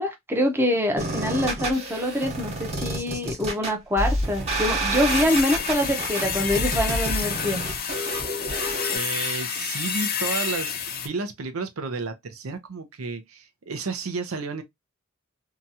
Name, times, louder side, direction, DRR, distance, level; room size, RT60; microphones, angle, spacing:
voice 1, 0.0-7.6, left 1 dB, 10° right, 0.6 m, -25 dB
sound 1, 1.0-9.0, right 1 dB, 30° right, 1.0 m, -29 dB
sound 2, 4.9-11.1, left 7 dB, 45° left, 0.5 m, -29 dB
voice 2, 8.9-14.6, right 4 dB, 80° right, 0.6 m, -32 dB
2.8 x 2.3 x 2.6 m
head